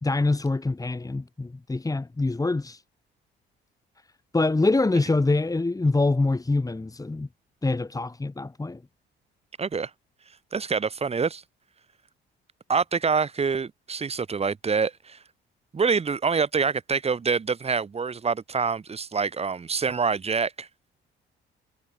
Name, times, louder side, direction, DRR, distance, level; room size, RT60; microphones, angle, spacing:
voice 1, 0.0-2.8 4.3-7.3 7.6-8.8, left 2 dB, 15° left, 2.5 m, -25 dB
voice 2, 9.6-9.9 10.5-11.4 12.7-15.2 15.7-20.7, right 5 dB, 30° right, 1.3 m, -26 dB
cardioid pair, 90°, 20 cm